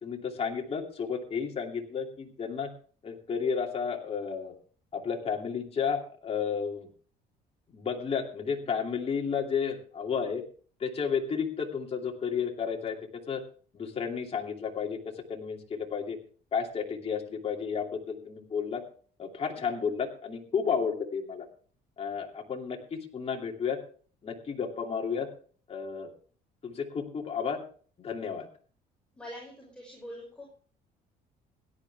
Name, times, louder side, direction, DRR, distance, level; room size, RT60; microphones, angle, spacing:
voice 1, 0.0-2.7 3.0-4.5 4.9-6.9 7.7-10.4 10.8-13.0 13.3-13.4 13.7-15.0 15.3-16.2 16.5-18.8 19.2-21.5 22.0-23.8 24.2-25.3 25.7-26.1 26.6-27.6 28.0-28.5, left 6 dB, 35° left, 1 dB, 2.8 m, -32 dB
voice 2, 29.2-30.5, equal, 5° left, -3 dB, 5.9 m, -44 dB
17.0 x 11.5 x 3.5 m, 0.43 s
cardioid pair, 110°, 17 cm